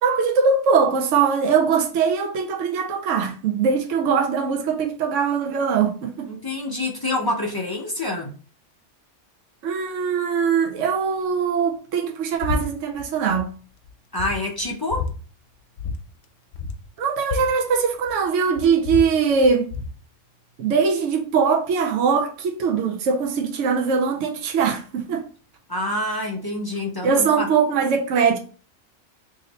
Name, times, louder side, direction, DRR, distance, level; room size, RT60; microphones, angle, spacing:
voice 1, 0.0-6.3 9.6-13.5 17.0-19.7 20.6-25.2 27.0-28.4, right 5 dB, 80° right, 0.9 m, -21 dB
voice 2, 6.3-8.3 14.1-15.1 25.7-27.5, left 1 dB, 35° left, 0.3 m, -27 dB
sound 1, 12.4-12.6 12.9-13.5 13.8-13.9 14.2-15.1 15.8-16.2 16.5-18.2 18.5-20.0, left 4 dB, 85° left, 1.0 m, -30 dB
3.0 x 2.7 x 3.9 m
omnidirectional pair, 1.3 m